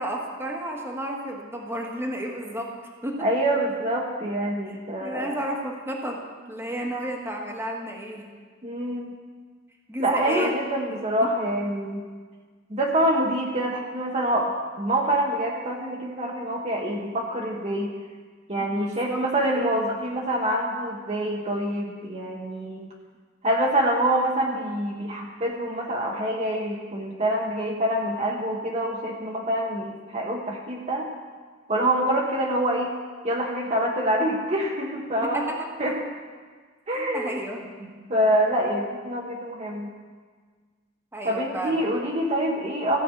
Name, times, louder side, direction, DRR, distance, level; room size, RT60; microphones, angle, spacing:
voice 1, 0.0-2.7 3.0-3.3 4.7-8.3 9.9-10.5 10.9-11.4 18.6-19.2 19.5-19.7 35.2-35.7 36.9-37.9 41.1-41.9, right 1 dB, 15° right, 0 dB, 1.4 m, -32 dB
voice 2, 3.2-5.3 8.6-9.1 10.0-12.0 12.7-17.9 18.5-22.9 23.4-31.1 31.7-32.9 33.2-35.4 35.8-35.9 36.9-37.4 38.1-39.9 41.2-43.0, right 1 dB, 35° right, -1 dB, 1.0 m, -26 dB
15.0 x 5.3 x 8.3 m, 1.5 s
head